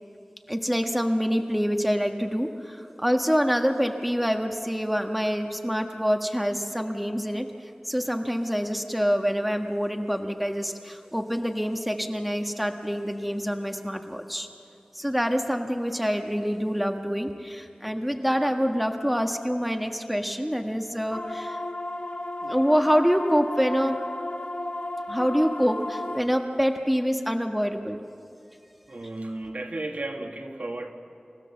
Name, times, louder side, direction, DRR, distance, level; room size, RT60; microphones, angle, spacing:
voice 1, 0.5-14.5 14.9-21.6 22.4-24.0 25.1-28.0, equal, 5° right, 4 dB, 1.5 m, -26 dB
sound 1, 21.1-26.2, left 1 dB, 55° left, 2.7 m, -33 dB
voice 2, 28.9-30.9, right 2 dB, 70° right, 3 dB, 1.8 m, -34 dB
27.5 x 16.0 x 7.2 m, 2.6 s
wide cardioid pair, 55°, 3 cm